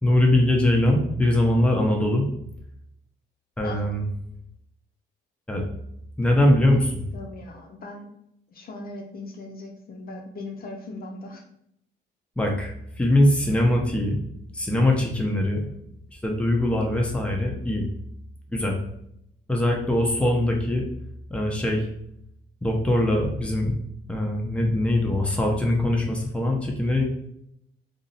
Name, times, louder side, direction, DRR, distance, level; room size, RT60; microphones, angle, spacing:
voice 1, 0.0-2.2 3.6-4.0 5.5-5.6 6.2-6.8 12.4-14.2 14.5-15.6 16.2-17.8 18.5-18.8 19.5-20.8 21.3-21.9 22.6-23.7 24.1-27.0, left 1 dB, 5° left, 0 dB, 0.7 m, -22 dB
voice 2, 6.5-6.8 7.1-8.1 8.5-11.4 13.4-13.5, left 2 dB, 50° left, 1 dB, 0.5 m, -38 dB
2.5 x 2.0 x 3.8 m, 0.73 s
cardioid pair, 90°, 20 cm